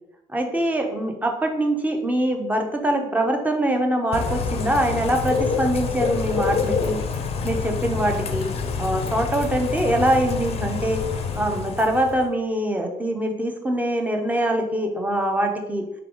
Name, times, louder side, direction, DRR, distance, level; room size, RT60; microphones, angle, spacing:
voice 1, 0.3-7.0 7.4-8.5 8.8-11.0 11.3-15.8, right 1 dB, 10° right, 4 dB, 0.6 m, -23 dB
Bird / Rain, 4.1-12.3, left 5 dB, 35° left, 0.5 m, -27 dB
3.3 x 3.3 x 3.8 m, 0.86 s
cardioid pair, 110°, 17 cm